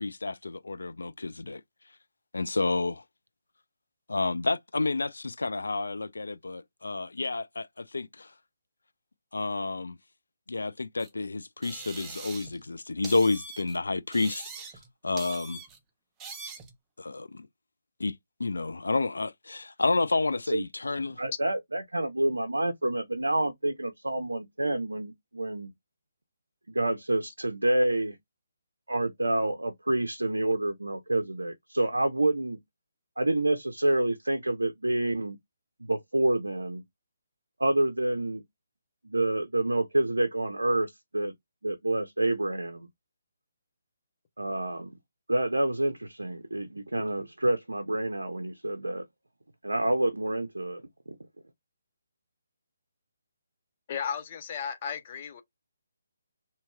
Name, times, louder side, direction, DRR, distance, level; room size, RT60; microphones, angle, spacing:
voice 1, 0.0-1.6 2.3-3.0 4.1-8.3 9.3-10.0 10.5-14.7 15.0-15.6 17.0-17.5 18.0-21.2, left 3 dB, 80° left, 0.4 m, -30 dB
sound 1, 11.0-11.1 11.6-12.6 13.0-13.8 14.1-14.9 15.2-15.8 16.2-16.7, right 5 dB, 15° right, 0.6 m, -43 dB
voice 2, 21.2-25.7 26.7-28.2 28.9-32.6 33.2-35.4 35.8-36.8 37.6-38.4 39.0-41.3 41.6-42.9 44.4-44.9 45.3-49.0 49.6-50.8, right 1 dB, 90° right, 0.5 m, -28 dB
voice 3, 53.9-55.4, left 7 dB, 40° left, 0.7 m, -34 dB
2.8 x 2.8 x 2.3 m
figure-of-eight pair, 145°, 0 cm